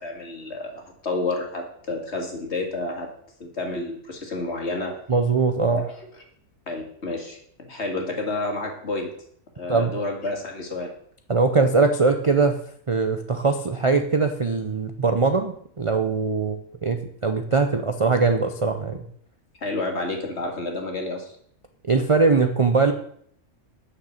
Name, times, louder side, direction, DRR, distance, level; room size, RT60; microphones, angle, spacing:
voice 1, 0.0-3.1 3.4-5.0 5.7-5.9 6.7-9.1 9.6-10.9 19.6-21.3, left 2 dB, 50° left, 2 dB, 2.3 m, -30 dB
voice 2, 5.1-5.8 9.7-9.9 11.3-12.6 12.9-19.1 21.9-22.9, right 4 dB, 35° right, 6 dB, 0.5 m, -21 dB
9.2 x 6.6 x 6.5 m, 0.63 s
omnidirectional pair, 1.5 m